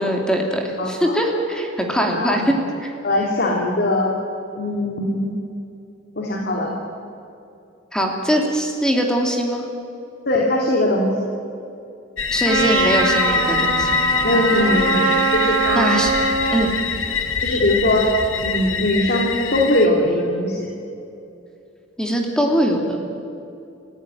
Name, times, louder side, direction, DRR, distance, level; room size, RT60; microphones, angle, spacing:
voice 1, 0.0-2.9 7.9-9.6 12.3-14.1 15.7-16.1 16.5-16.7 22.0-23.0, equal, 5° left, 1 dB, 2.8 m, -21 dB
voice 2, 0.8-1.2 2.1-2.5 3.0-4.1 4.5-5.3 6.1-6.8 10.3-11.3 14.2-15.9 17.4-18.1 18.4-20.7, left 1 dB, 55° left, -1 dB, 3.1 m, -21 dB
sound 1, 12.2-19.9, left 6 dB, 80° left, 1.6 m, -24 dB
Trumpet, 12.5-16.7, right 4 dB, 90° right, 2.9 m, -22 dB
29.0 x 15.5 x 9.2 m, 2.7 s
head